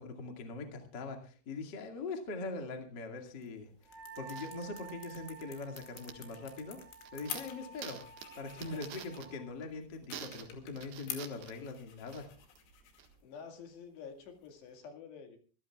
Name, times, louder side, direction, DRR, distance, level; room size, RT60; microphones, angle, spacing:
voice 1, 0.0-6.8 7.1-8.1 8.3-12.3, left 3 dB, 40° left, 4 dB, 1.5 m, -42 dB
sound 1, 3.2-14.8, left 9 dB, 90° left, 4.8 m, -50 dB
sound 2, 3.8-13.2, right 9 dB, 65° right, 3.3 m, -51 dB
Wind instrument woodwind instrument, 3.9-9.4, right 6 dB, 90° right, 5.0 m, -52 dB
voice 2, 8.6-9.0 13.2-15.4, left 6 dB, 65° left, 4 dB, 4.1 m, -49 dB
25.0 x 15.0 x 2.4 m, 0.38 s
omnidirectional pair, 5.4 m